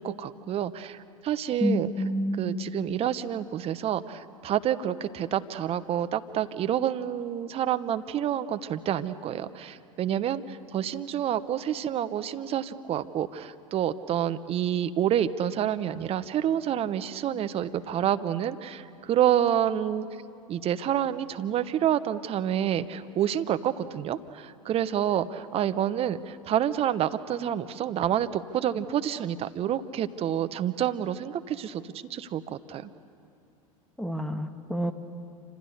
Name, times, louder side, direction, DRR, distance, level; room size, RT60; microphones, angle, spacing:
voice 1, 0.0-1.9 2.4-20.1 20.5-32.9, right 10 dB, 30° right, 11 dB, 1.0 m, -28 dB
voice 2, 1.6-2.6 34.0-34.9, equal, ahead, 8 dB, 1.5 m, -28 dB
27.5 x 26.5 x 6.7 m, 2.7 s
figure-of-eight pair, 85°, 19 cm